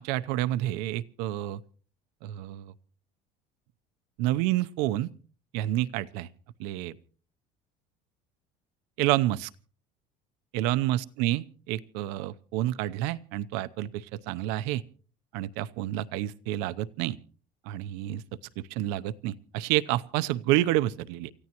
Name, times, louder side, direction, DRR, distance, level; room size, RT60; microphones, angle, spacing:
voice 1, 0.0-1.6 2.2-2.7 4.2-5.1 5.5-6.3 6.6-7.0 9.0-9.5 10.5-14.8 15.3-17.2 17.7-18.2 18.7-21.3, right 15 dB, 80° right, 14 dB, 0.7 m, -29 dB
28.5 x 15.0 x 3.0 m, 0.39 s
cardioid pair, 155°, 17 cm